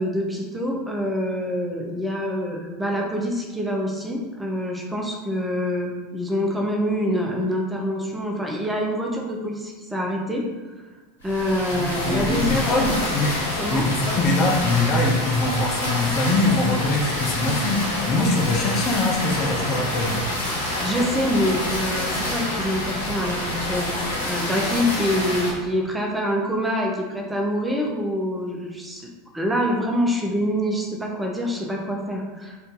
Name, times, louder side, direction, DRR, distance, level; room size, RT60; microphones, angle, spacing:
voice 1, 0.0-10.4 11.2-13.1 13.6-13.8 20.5-23.9 24.2-29.0 29.3-32.6, equal, 10° right, -1 dB, 0.6 m, -26 dB
sound 1, 11.2-25.5, left 1 dB, 85° left, 0.9 m, -27 dB
voice 2, 11.6-13.4 13.7-20.2, left 2 dB, 45° left, 1 dB, 0.6 m, -23 dB
2.6 x 2.5 x 3.6 m, 1.2 s
hypercardioid pair, 85°, 0 cm